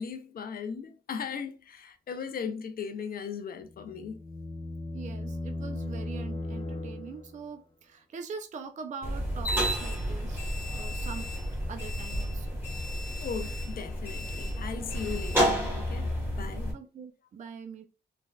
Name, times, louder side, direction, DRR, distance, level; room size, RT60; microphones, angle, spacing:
voice 1, 0.0-4.2 13.2-16.1 16.4-16.7, left 6 dB, 55° left, 0.4 m, -37 dB
sound 1, 3.6-7.5, left 2 dB, 30° left, 0.9 m, -37 dB
voice 2, 4.9-11.3 11.7-12.6 16.7-17.9, right 5 dB, 45° right, 0.4 m, -43 dB
sound 2, 9.0-16.7, equal, 10° right, 1.2 m, -31 dB
3.2 x 2.2 x 2.2 m
cardioid pair, 80°, 18 cm